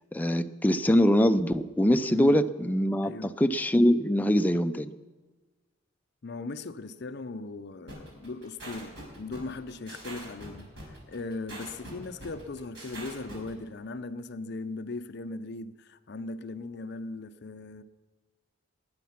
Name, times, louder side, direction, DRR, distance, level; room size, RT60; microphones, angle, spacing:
voice 1, 0.1-4.9, equal, 10° left, 0.4 m, -23 dB
voice 2, 2.1-2.4 3.0-3.3 6.2-17.8, left 3 dB, 55° left, 0.5 m, -38 dB
sound 1, 7.9-13.5, right 1 dB, 60° right, 6.0 m, -43 dB
20.0 x 9.3 x 5.9 m
head